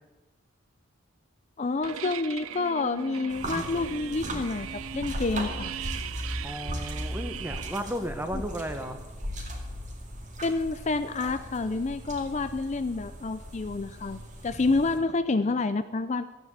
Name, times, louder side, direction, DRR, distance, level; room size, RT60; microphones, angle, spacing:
voice 1, 1.6-5.7 8.3-8.4 10.4-16.2, left 3 dB, 35° left, 11 dB, 0.4 m, -28 dB
sound 1, 1.8-7.8, right 9 dB, 80° right, 0.6 m, -39 dB
sound 2, 3.3-15.0, equal, 35° right, 2.2 m, -38 dB
voice 2, 6.4-9.0 15.4-15.5, equal, 10° right, 8 dB, 1.1 m, -34 dB
13.0 x 9.2 x 8.0 m, 1.1 s
head